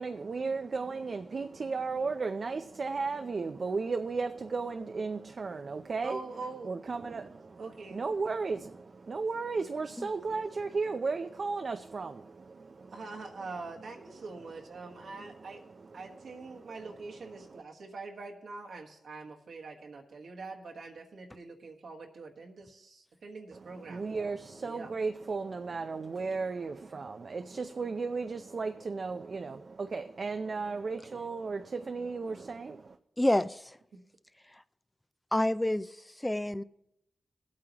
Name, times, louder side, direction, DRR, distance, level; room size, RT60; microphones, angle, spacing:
voice 1, 0.0-6.2 6.6-13.0 14.8-16.8 17.4-17.6 23.5-33.0, right 4 dB, 60° right, 7 dB, 0.5 m, -35 dB
voice 2, 6.0-6.7 7.6-8.1 12.9-15.6 15.9-24.0 24.6-24.9, right 3 dB, 80° right, 1 dB, 1.4 m, -44 dB
voice 3, 33.2-33.6 35.3-35.9 36.2-36.6, left 1 dB, 15° left, 14 dB, 0.4 m, -27 dB
18.5 x 8.5 x 3.0 m, 0.79 s
cardioid pair, 55°, 0 cm